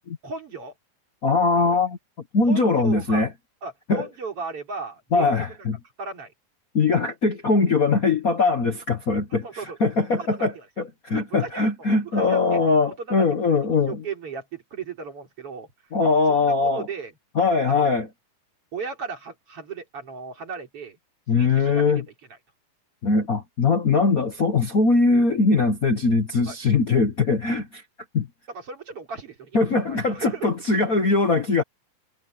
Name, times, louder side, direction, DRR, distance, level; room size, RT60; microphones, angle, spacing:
voice 1, 0.2-0.7 1.5-1.8 2.5-3.2 3.6-5.3 6.0-6.3 9.3-9.8 10.1-10.7 11.1-11.6 12.0-12.6 13.0-13.1 13.9-15.7 16.3-17.1 17.7-17.9 18.7-21.0 21.3-22.0 26.5-26.6 28.5-30.5, right 4 dB, 45° right, 4.3 m, -36 dB
voice 2, 1.2-2.0 2.3-3.3 3.9-4.1 5.1-5.8 6.7-14.0 15.9-16.9 17.3-18.1 21.3-22.0 23.0-27.8 28.1-28.3 29.5-31.6, left 4 dB, 65° left, 0.8 m, -21 dB
omnidirectional pair, 3.7 m